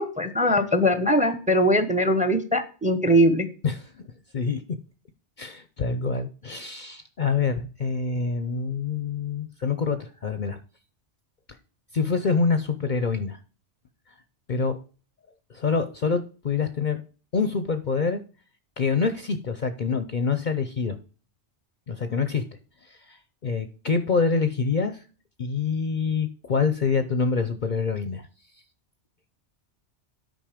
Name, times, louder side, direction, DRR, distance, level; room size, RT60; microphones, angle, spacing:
voice 1, 0.0-3.5, equal, 5° right, 11 dB, 0.9 m, -21 dB
voice 2, 4.3-4.8 5.4-10.6 11.9-13.4 14.5-14.8 15.5-17.0 17.3-18.2 18.8-21.0 21.9-22.4 22.8-25.0 25.4-28.2, left 5 dB, 45° left, 10 dB, 0.8 m, -26 dB
9.1 x 5.4 x 4.9 m, 0.37 s
omnidirectional pair, 1.2 m